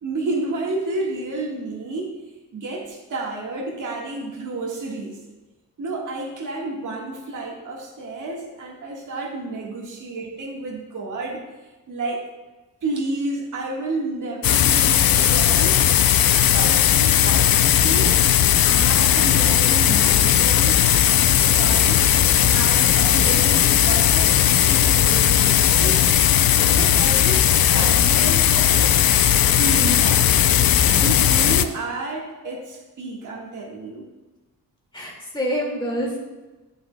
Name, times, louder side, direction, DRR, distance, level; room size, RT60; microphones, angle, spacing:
voice 1, 0.0-2.1 2.5-5.2 5.8-11.4 11.9-12.3 12.8-16.1 16.5-18.2 18.6-20.8 21.3-22.0 22.5-26.0 26.4-28.9 29.5-30.3 30.9-34.0, right 2 dB, 60° right, -3 dB, 1.6 m, -30 dB
sound 1, 14.4-31.7, left 10 dB, 80° left, 0.5 m, -17 dB
voice 2, 34.9-36.2, equal, 15° left, -3 dB, 2.1 m, -27 dB
11.0 x 8.4 x 2.2 m, 1.2 s
wide cardioid pair, 155°, 35 cm